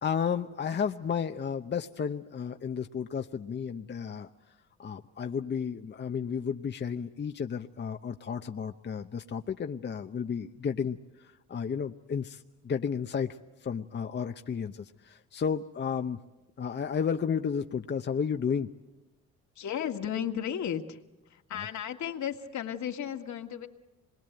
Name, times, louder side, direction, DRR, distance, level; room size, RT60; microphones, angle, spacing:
voice 1, 0.0-4.3 4.8-16.2 16.6-18.7 21.5-21.7, left 7 dB, 35° left, 6 dB, 0.8 m, -32 dB
voice 2, 19.6-21.0 21.3-23.7, left 9 dB, 70° left, 5 dB, 2.0 m, -34 dB
26.0 x 22.0 x 9.0 m, 1.0 s
cardioid pair, 90°, 30 cm